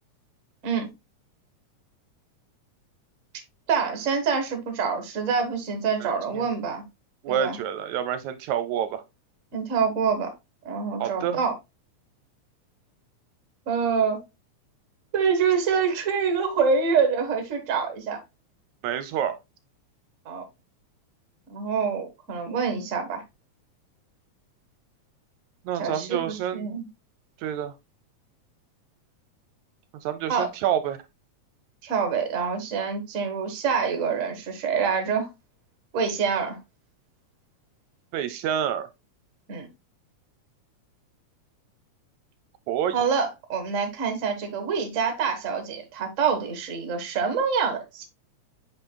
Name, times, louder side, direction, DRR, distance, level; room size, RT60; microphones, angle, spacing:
voice 1, 3.7-6.8 7.3-7.6 9.5-10.3 10.6-11.5 13.7-14.2 15.1-18.2 20.2-20.4 21.5-23.2 25.8-26.9 30.3-30.5 31.8-35.3 35.9-36.6 39.5-39.7 42.9-48.1, right 6 dB, 40° right, 1.1 m, -26 dB
voice 2, 6.0-6.4 7.2-9.0 11.0-11.4 18.8-19.4 25.7-26.7 27.4-27.7 30.0-31.0 38.1-38.9 42.7-43.0, right 9 dB, 80° right, 1.8 m, -28 dB
8.0 x 5.6 x 2.2 m
omnidirectional pair, 3.5 m